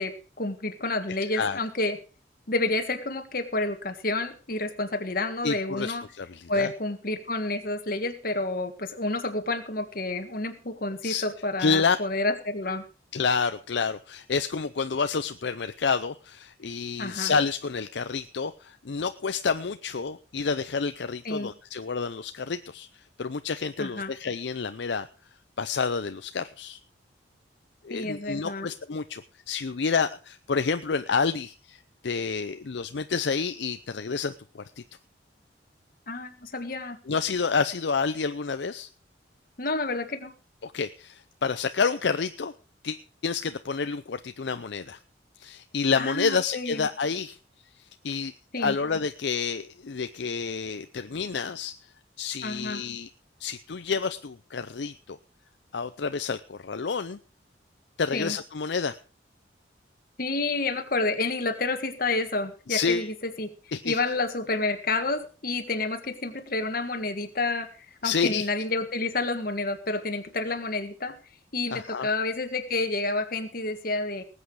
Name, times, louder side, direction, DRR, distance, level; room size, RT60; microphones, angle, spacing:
voice 1, 0.0-2.0 2.5-6.0 6.5-12.8 17.0-17.3 21.2-21.5 23.8-24.1 27.9-28.7 36.1-37.0 39.6-40.3 46.0-46.9 48.5-48.8 52.4-52.8 58.1-58.4 60.2-63.5 63.8-67.7 68.0-71.1 71.5-74.2, left 2 dB, 50° left, 7 dB, 1.7 m, -29 dB
voice 2, 5.4-6.7 11.0-11.2 11.6-12.0 13.1-22.9 23.2-25.1 25.6-26.8 27.8-29.2 29.5-34.8 37.1-38.9 40.6-42.5 42.8-45.0 45.4-47.4 47.8-51.7 52.2-53.1 53.4-55.2 55.7-57.2 58.0-59.0 62.7-63.1 63.7-64.0 68.0-68.5 71.7-72.1, left 5 dB, 70° left, 10 dB, 0.6 m, -29 dB
19.5 x 8.3 x 4.8 m, 0.37 s
head